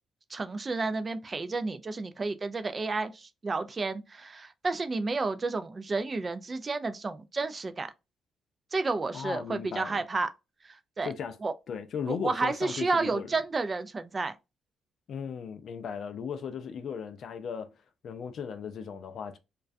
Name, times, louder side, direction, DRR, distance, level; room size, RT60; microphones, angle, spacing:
voice 1, 0.3-7.9 8.7-10.3 10.6-11.1 11.4-11.5 12.1-14.3, right 3 dB, 30° right, 0.3 m, -31 dB
voice 2, 9.1-10.0 11.0-11.4 11.7-13.3 15.1-17.7 18.0-19.4, left 7 dB, 60° left, 0.3 m, -36 dB
2.3 x 2.2 x 2.4 m
cardioid pair, 90°, 0 cm